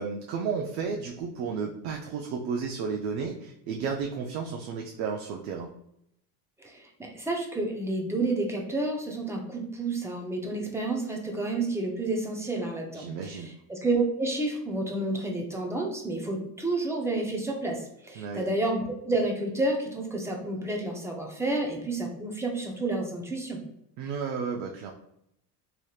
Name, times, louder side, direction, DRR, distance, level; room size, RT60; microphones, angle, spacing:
voice 1, 0.0-5.7 12.9-13.5 18.2-18.4 24.0-24.9, right 5 dB, 70° right, 2 dB, 0.5 m, -33 dB
voice 2, 6.6-23.6, right 2 dB, 5° right, 0 dB, 0.5 m, -30 dB
3.2 x 2.9 x 2.3 m, 0.76 s
supercardioid pair, 110°, 44 cm